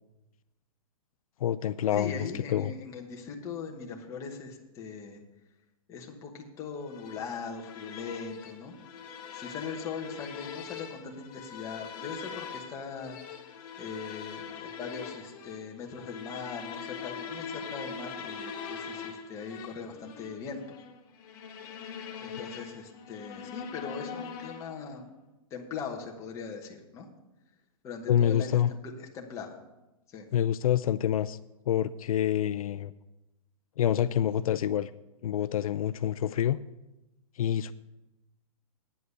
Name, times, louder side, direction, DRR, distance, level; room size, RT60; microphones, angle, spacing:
voice 1, 1.4-2.7 28.1-28.7 30.3-31.4 31.7-32.9 33.8-34.9 35.2-36.6 37.4-37.7, left 10 dB, 75° left, 13 dB, 0.4 m, -27 dB
voice 2, 1.9-5.2 5.9-8.8 9.3-13.4 13.8-20.8 22.2-25.1 25.5-27.1 27.8-29.5 30.1-30.3, left 5 dB, 15° left, 1 dB, 1.1 m, -40 dB
sound 1, 6.9-24.9, left 6 dB, 40° left, 1.5 m, -42 dB
9.6 x 7.8 x 6.6 m, 0.98 s
hypercardioid pair, 165°, 18 cm